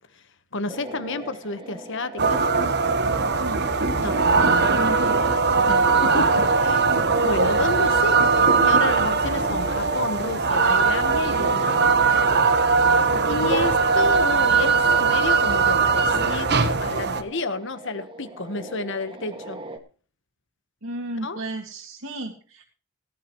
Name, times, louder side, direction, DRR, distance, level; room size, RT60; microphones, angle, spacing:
voice 1, 0.5-2.7 4.0-5.0 5.6-6.8 7.2-11.9 13.2-19.6 21.2-21.4, left 3 dB, 55° left, 11 dB, 1.3 m, -31 dB
sound 1, 0.7-19.8, right 1 dB, 25° right, 1.9 m, -41 dB
sound 2, 2.2-17.2, right 4 dB, 50° right, 1.2 m, -20 dB
voice 2, 4.1-5.3 20.8-22.7, right 1 dB, 85° right, -1 dB, 2.4 m, -34 dB
18.0 x 12.0 x 3.1 m, 0.39 s
head